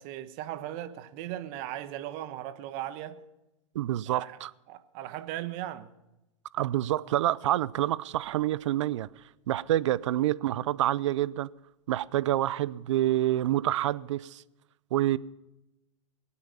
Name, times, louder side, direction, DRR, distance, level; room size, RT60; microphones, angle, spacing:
voice 1, 0.0-3.2 4.1-4.4 4.7-5.9, right 13 dB, 45° right, 1.2 m, -37 dB
voice 2, 3.7-4.5 6.5-9.1 9.5-11.5 11.9-14.4 14.9-15.2, right 13 dB, 70° right, 0.6 m, -27 dB
24.0 x 8.6 x 5.5 m
hypercardioid pair, 135°, 16 cm